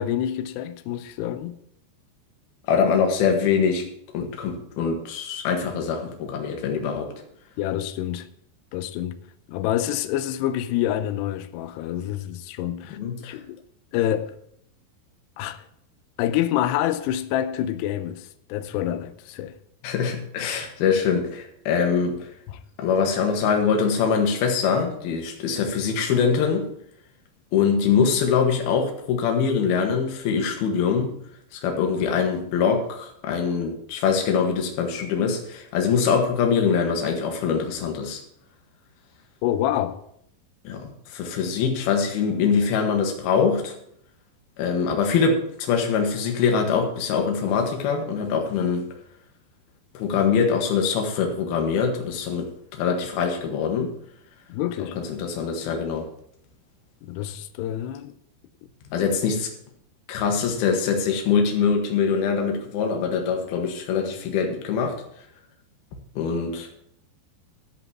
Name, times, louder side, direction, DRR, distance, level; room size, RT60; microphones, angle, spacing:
voice 1, 0.0-1.6 7.6-8.3 8.7-9.2 9.5-13.0 13.2-13.6 13.9-14.3 15.4-15.6 16.2-19.5 22.5-22.6 39.4-40.0 54.5-55.0 57.0-58.1, left 12 dB, 85° left, 2.5 m, -27 dB
voice 2, 2.7-3.8 4.1-7.1 12.9-13.4 19.8-22.3 22.8-26.7 27.5-31.1 31.5-38.2 40.6-43.7 44.6-48.9 49.9-53.9 54.8-56.1 58.9-59.5 60.1-65.0 66.2-66.7, left 6 dB, 60° left, 3.2 m, -23 dB
13.5 x 5.3 x 7.3 m
omnidirectional pair, 5.6 m